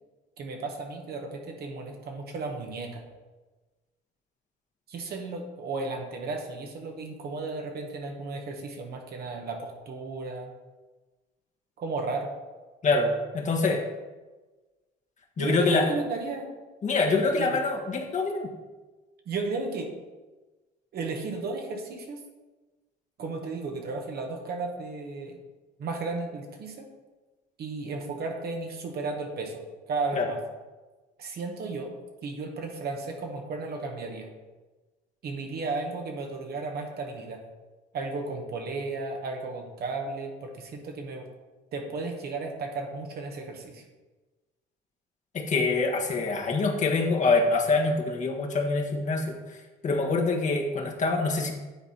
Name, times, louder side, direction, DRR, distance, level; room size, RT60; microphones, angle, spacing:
voice 1, 0.4-3.0 4.9-10.5 11.8-12.3 15.4-16.5 17.4-17.6 19.2-19.9 20.9-22.2 23.2-25.4 25.8-26.9 27.6-29.6 29.9-30.4 31.2-31.9 32.2-34.3 35.2-37.4 37.9-41.3 41.7-43.8, right 3 dB, 55° right, 2 dB, 1.5 m, -34 dB
voice 2, 12.8-13.8 15.4-16.0 16.8-18.5 30.1-30.3 45.3-49.4 49.8-51.5, left 3 dB, 40° left, 1 dB, 1.4 m, -25 dB
9.5 x 4.0 x 4.3 m, 1.2 s
supercardioid pair, 80°, 19 cm